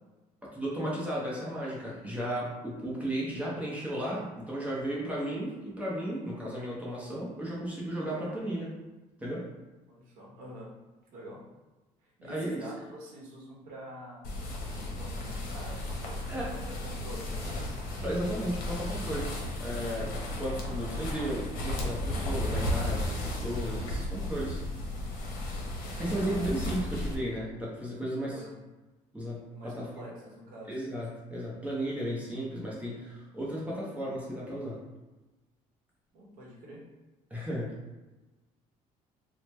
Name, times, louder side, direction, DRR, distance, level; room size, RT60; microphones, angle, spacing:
voice 1, 0.5-8.8 9.2-9.5 12.3-12.6 16.3-16.5 18.0-24.6 26.0-28.4 29.1-29.9 30.7-34.8 37.3-37.8, right 1 dB, 10° right, -6 dB, 0.6 m, -34 dB
voice 2, 9.9-10.7 11.1-11.4 12.0-17.5 28.2-28.6 29.5-30.8 36.1-36.8, equal, 90° right, -3 dB, 0.9 m, -47 dB
sound 1, 14.2-27.1, left 1 dB, 75° left, 0.7 m, -34 dB
3.1 x 2.0 x 3.2 m, 1.1 s
cardioid pair, 130°, 14 cm